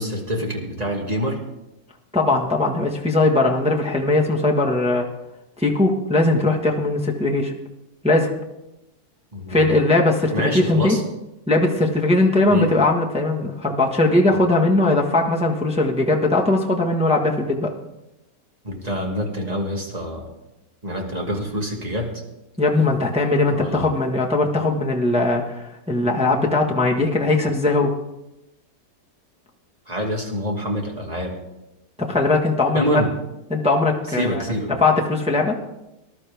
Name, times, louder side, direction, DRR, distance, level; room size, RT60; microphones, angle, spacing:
voice 1, 0.0-1.4 9.3-9.8 10.3-11.0 12.5-12.7 18.6-20.3 20.8-22.2 23.5-23.8 29.9-31.3 32.7-33.1 34.1-34.7, equal, 25° right, 0 dB, 2.2 m, -26 dB
voice 2, 2.1-5.0 5.6-7.5 8.0-8.3 9.5-11.0 11.5-17.7 22.6-27.9 32.0-33.0 33.5-34.4 34.8-35.5, left 2 dB, 5° right, -1 dB, 1.2 m, -19 dB
19.5 x 12.0 x 3.5 m, 0.94 s
omnidirectional pair, 1.8 m